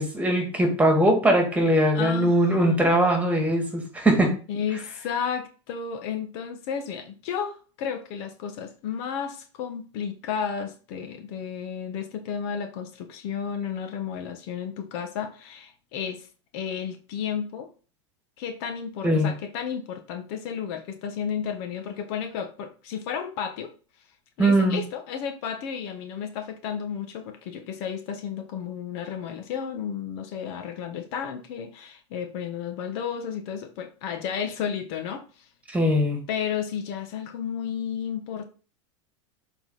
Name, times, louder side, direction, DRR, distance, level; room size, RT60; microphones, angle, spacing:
voice 1, 0.0-4.3 19.0-19.3 24.4-24.8 35.7-36.2, right 1 dB, 10° right, 2.3 m, -21 dB
voice 2, 1.9-2.9 4.5-16.3 16.5-17.7 18.4-23.7 24.4-35.5 36.3-38.4, left 7 dB, 60° left, 1.2 m, -32 dB
7.0 x 4.0 x 3.9 m
hypercardioid pair, 110°, 15 cm